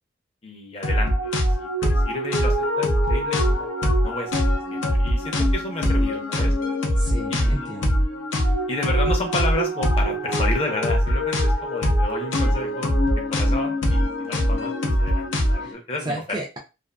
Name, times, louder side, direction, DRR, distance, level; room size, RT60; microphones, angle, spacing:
voice 1, 0.4-6.5 7.3-7.7 8.7-12.9 13.3-16.4, left 1 dB, 30° left, 2 dB, 0.6 m, -32 dB
sound 1, 0.8-15.7, equal, 80° left, 0.6 m, -22 dB
voice 2, 7.0-8.0 15.6-15.8 16.0-16.6, right 1 dB, 20° right, 0 dB, 0.4 m, -32 dB
2.5 x 2.4 x 2.2 m, 0.28 s
head